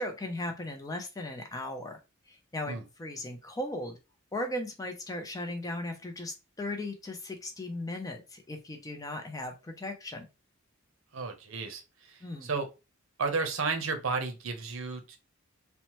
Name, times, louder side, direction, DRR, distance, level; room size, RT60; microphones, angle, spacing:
voice 1, 0.0-2.0 2.3-4.0 4.3-10.3 12.2-12.5, left 1 dB, 15° left, 5 dB, 0.4 m, -37 dB
voice 2, 11.1-11.8 12.1-12.7 13.2-15.2, right 4 dB, 70° right, 6 dB, 0.6 m, -32 dB
2.8 x 2.1 x 2.9 m, 0.27 s
head